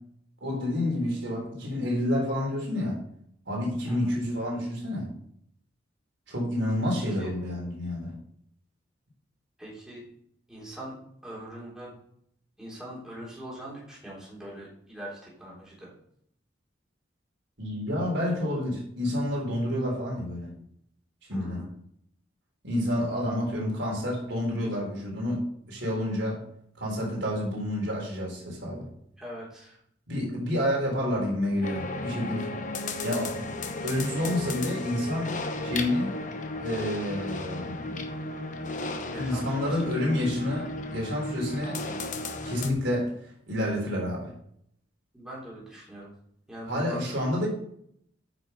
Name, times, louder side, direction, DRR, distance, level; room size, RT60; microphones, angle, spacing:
voice 1, 0.4-3.0 3.5-5.1 6.3-8.2 17.6-20.6 21.3-21.7 22.6-26.4 26.8-28.9 30.1-32.5 33.0-33.5 33.8-36.2 36.6-38.1 39.1-41.8 42.5-43.1 43.5-44.3 46.7-47.5, left 1 dB, 80° right, -2 dB, 3.9 m, -29 dB
voice 2, 9.6-10.0 10.5-11.0 11.2-11.9 12.6-15.9 21.3-21.7 29.2-29.8 39.1-39.8 45.1-46.1 46.5-47.1, right 1 dB, 5° right, -6 dB, 3.4 m, -42 dB
sound 1, 31.6-42.7, left 2 dB, 45° left, 1.0 m, -35 dB
9.0 x 6.0 x 5.2 m, 0.69 s
head